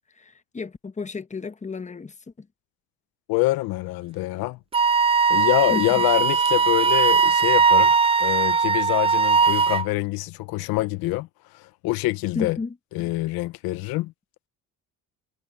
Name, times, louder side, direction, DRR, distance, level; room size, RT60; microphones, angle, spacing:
voice 1, 0.1-2.5 5.7-6.0 12.3-13.1, left 4 dB, 20° left, 1.2 m, -33 dB
voice 2, 3.3-4.6 5.3-7.9 8.2-11.3 11.5-12.6 12.9-14.1, left 19 dB, 90° left, 0.9 m, -25 dB
Wind instrument woodwind instrument, 4.7-9.9, right 5 dB, 20° right, 0.3 m, -19 dB
cardioid pair, 90°, 35 cm